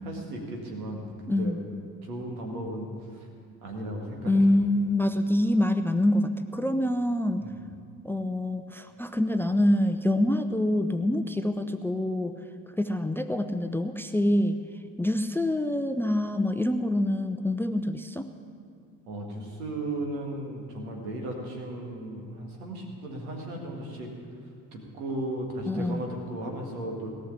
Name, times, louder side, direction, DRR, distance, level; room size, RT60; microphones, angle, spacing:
voice 1, 0.1-1.6 2.0-3.3 3.6-4.3 7.4-7.6 19.1-24.1 24.7-27.1, right 1 dB, 75° right, 1 dB, 2.0 m, -36 dB
voice 2, 1.3-1.6 4.3-7.4 8.0-12.4 12.8-14.6 15.0-18.3 25.7-26.0, left 1 dB, 5° left, 9 dB, 0.6 m, -26 dB
17.5 x 6.5 x 9.9 m, 2.4 s
figure-of-eight pair, 45°, 44 cm